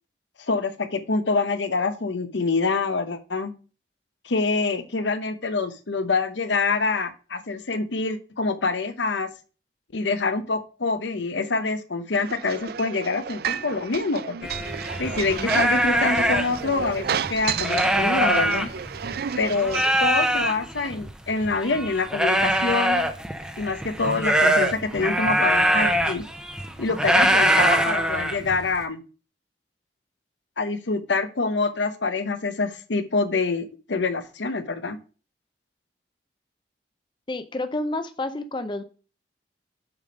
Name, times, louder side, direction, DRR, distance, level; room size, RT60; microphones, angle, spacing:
voice 1, 0.4-3.5 4.2-9.3 9.9-14.4 15.0-18.7 19.4-23.1 23.6-26.2 26.8-29.0 30.6-35.0, left 3 dB, 80° left, 10 dB, 0.8 m, -26 dB
sound 1, 12.1-20.1, right 8 dB, 55° right, 0.4 m, -32 dB
sound 2, 14.4-19.2 19.5-28.8, right 1 dB, 5° right, 0.8 m, -23 dB
voice 2, 37.3-38.8, left 2 dB, 25° left, 9 dB, 0.6 m, -29 dB
7.2 x 5.1 x 5.2 m, 0.36 s
head